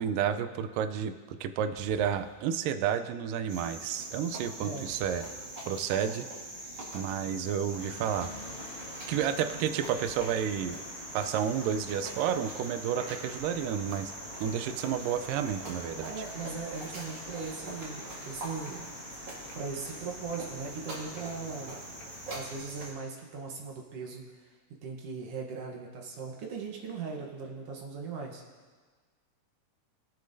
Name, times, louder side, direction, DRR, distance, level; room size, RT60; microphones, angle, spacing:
voice 1, 0.0-5.2 5.7-6.3 6.9-8.3 9.1-10.8 11.1-14.1 14.4-16.1, right 8 dB, 85° right, 10 dB, 2.2 m, -31 dB
sound 1, 1.8-2.5 4.9-5.6 8.0-8.7 10.0-11.4 13.3-14.7, left 1 dB, 35° left, 2.3 m, -56 dB
Cricket, 3.5-22.9, right 1 dB, 40° right, 2.3 m, -43 dB
sound 2, 7.8-22.6, left 2 dB, 60° left, 3.0 m, -48 dB
voice 2, 16.1-18.9 19.5-21.8 22.3-24.5 24.8-28.4, right 5 dB, 60° right, 0 dB, 1.7 m, -39 dB
22.0 x 7.6 x 2.6 m, 1.5 s
omnidirectional pair, 3.8 m